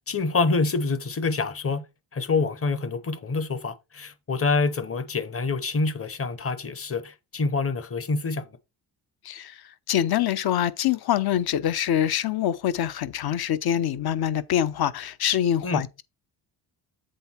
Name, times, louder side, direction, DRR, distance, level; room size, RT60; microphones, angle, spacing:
voice 1, 0.1-1.8 2.1-8.5 15.6-15.8, left 3 dB, 30° left, 0.9 m, -26 dB
voice 2, 9.9-16.0, left 10 dB, 60° left, 0.7 m, -25 dB
7.8 x 3.6 x 4.4 m
cardioid pair, 95°, 44 cm